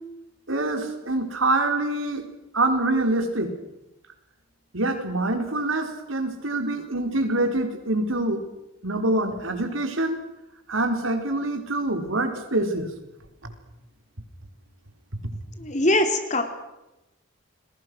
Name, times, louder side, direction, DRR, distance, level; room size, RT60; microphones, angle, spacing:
voice 1, 0.5-2.2 2.5-3.5 4.7-8.4 8.8-10.2 10.7-12.9, right 2 dB, 75° right, 6 dB, 4.2 m, -25 dB
voice 2, 15.6-16.4, left 1 dB, 35° left, 6 dB, 3.2 m, -22 dB
29.5 x 21.5 x 6.3 m, 0.94 s
head